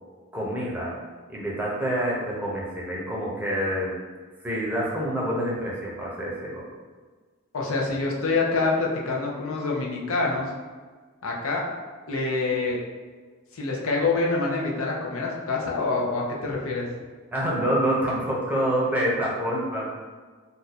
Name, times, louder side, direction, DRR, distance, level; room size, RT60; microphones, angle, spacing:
voice 1, 0.3-1.0 1.3-4.0 4.4-6.6 17.3-19.9, right 1 dB, 10° right, -5 dB, 0.6 m, -27 dB
voice 2, 7.5-10.5 11.2-11.6 12.1-12.8 13.5-16.9, left 3 dB, 80° left, -2 dB, 0.6 m, -26 dB
2.6 x 2.3 x 4.1 m, 1.5 s
head